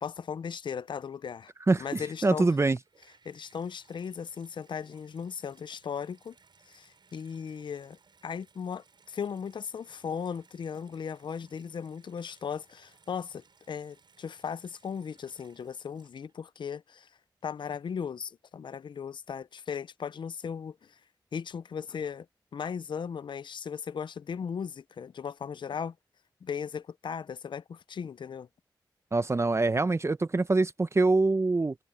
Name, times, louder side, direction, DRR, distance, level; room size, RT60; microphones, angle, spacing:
voice 1, 0.0-1.5 1.8-2.5 3.2-6.4 6.7-8.0 8.2-17.1 17.4-21.0 21.3-22.3 22.5-25.9 26.4-28.5, left 7 dB, 75° left, 0.5 m, -37 dB
voice 2, 1.7-2.8 29.1-31.7, right 3 dB, 35° right, 0.7 m, -25 dB
Water tap faucet / Bathtub (filling or washing), 2.8-16.6 17.4-17.5, right 5 dB, 70° right, 7.0 m, -63 dB
cardioid pair, 60°, 8 cm